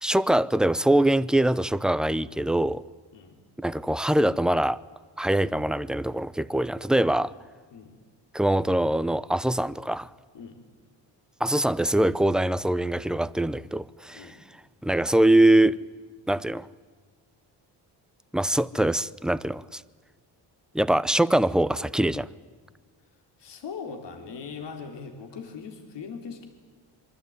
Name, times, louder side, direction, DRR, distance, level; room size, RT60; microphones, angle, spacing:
voice 1, 0.0-2.8 3.6-4.8 5.2-7.3 8.3-10.1 11.4-14.4 14.8-15.8 16.3-16.7 18.3-19.8 20.7-22.3, right 1 dB, ahead, 0.7 m, -23 dB
voice 2, 3.1-3.4 7.7-7.9 10.3-10.6 14.1-14.4 23.4-26.5, left 5 dB, 70° left, 3.8 m, -40 dB
26.5 x 23.5 x 9.6 m
cardioid pair, 100°, 44 cm